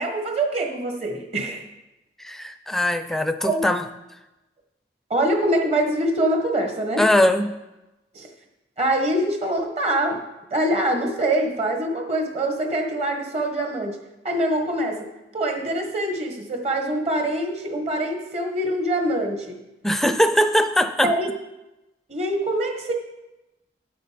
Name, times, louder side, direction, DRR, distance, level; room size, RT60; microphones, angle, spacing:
voice 1, 0.0-1.6 3.4-3.7 5.1-7.1 8.1-8.3 8.8-10.2 10.5-14.0 14.2-19.6 21.0-21.3 22.1-22.9, right 1 dB, 35° right, 4 dB, 1.4 m, -24 dB
voice 2, 2.2-3.8 7.0-7.6 19.8-21.1, left 1 dB, ahead, 9 dB, 0.4 m, -21 dB
9.5 x 7.8 x 5.1 m, 0.99 s
head